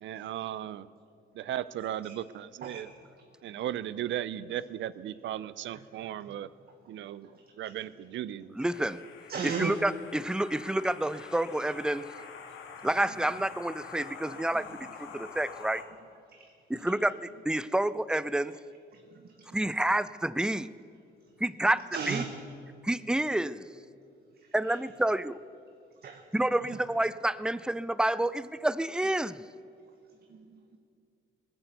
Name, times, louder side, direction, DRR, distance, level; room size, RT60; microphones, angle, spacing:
voice 1, 0.0-0.9 1.3-2.9 3.4-6.5 6.9-7.3 7.6-8.5, right 11 dB, 70° right, 17 dB, 0.6 m, -36 dB
voice 2, 8.6-9.0 9.4-12.0 12.8-14.7 15.1-15.8 16.7-17.1 17.5-18.5 19.5-20.7 21.4-22.2 22.8-23.6 24.5-25.4 26.3-29.4, right 1 dB, 5° right, 17 dB, 0.4 m, -29 dB
sound 1, 8.7-15.8, left 6 dB, 80° left, 1.8 m, -46 dB
voice 3, 9.3-9.7 12.2-12.3 14.3-14.4 16.3-16.5 16.8-16.9 18.9-19.6 21.9-22.3 24.7-24.8 26.0-26.2 26.7-26.8 30.3-30.8, right 6 dB, 50° right, 4 dB, 1.2 m, -37 dB
19.0 x 8.0 x 8.2 m, 2.5 s
cardioid pair, 90°, 20 cm